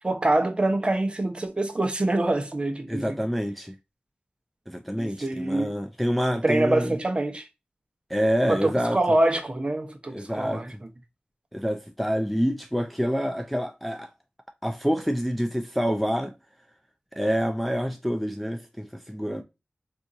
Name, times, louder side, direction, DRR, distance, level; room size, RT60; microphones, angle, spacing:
voice 1, 0.0-3.2 5.0-5.7 6.4-7.5 8.5-10.7, right 2 dB, 30° right, 0.8 m, -25 dB
voice 2, 2.9-3.7 4.7-7.0 8.1-9.0 10.1-10.6 11.5-14.1 14.6-16.3 17.1-19.4, equal, ahead, 0.3 m, -27 dB
3.7 x 2.6 x 2.5 m
wide cardioid pair, 80°, 3 cm